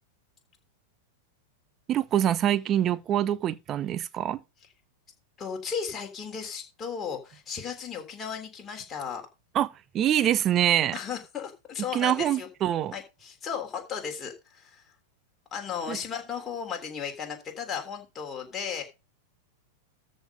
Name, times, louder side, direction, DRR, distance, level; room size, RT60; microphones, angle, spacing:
voice 1, 1.9-4.4 9.5-11.0 11.9-12.9 15.9-16.0, right 11 dB, 30° right, 0.7 m, -25 dB
voice 2, 5.4-9.2 10.9-12.5 12.9-14.8 15.5-18.8, left 7 dB, 20° left, 3.5 m, -35 dB
13.5 x 5.3 x 5.3 m
figure-of-eight pair, 90°, 0 cm